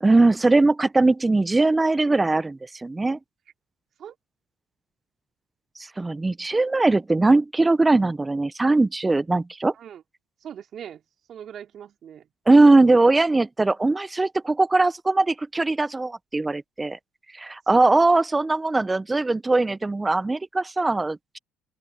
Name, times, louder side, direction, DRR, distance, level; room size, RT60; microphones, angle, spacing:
voice 1, 0.0-3.2 6.0-9.7 12.5-17.0 17.3-21.4, right 2 dB, 15° right, 0.8 m, -20 dB
voice 2, 10.4-11.0 11.3-12.3, right 9 dB, 55° right, 3.4 m, -40 dB
open air
supercardioid pair, 70°, 0 cm